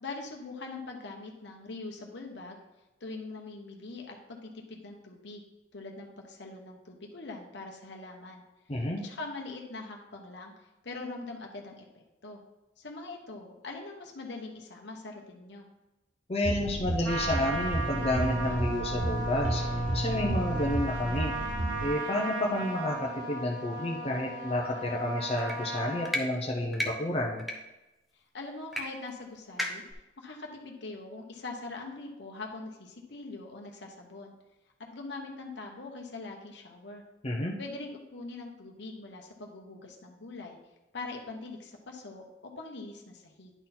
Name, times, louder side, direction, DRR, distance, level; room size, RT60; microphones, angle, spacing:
voice 1, 0.0-2.6 3.0-5.4 5.7-8.4 8.8-12.4 12.8-15.7 28.1-29.8 30.2-34.3 34.9-37.0 37.6-40.6 40.9-43.5, left 3 dB, 65° left, 1 dB, 1.0 m, -42 dB
voice 2, 8.7-9.0 16.3-19.6 19.9-21.3 21.8-27.4 37.2-37.5, left 1 dB, 30° left, -1 dB, 0.8 m, -30 dB
sound 1, 16.4-21.9, right 1 dB, 40° right, 0.6 m, -32 dB
Trumpet, 17.0-26.1, right 2 dB, 80° right, 1.3 m, -36 dB
sound 2, 25.4-25.6 26.0-26.2 26.7-26.9 27.4-27.6 28.7-28.8 29.1-29.2 29.6-29.9, left 1 dB, ahead, 0.7 m, -32 dB
10.0 x 4.0 x 4.3 m, 1.0 s
head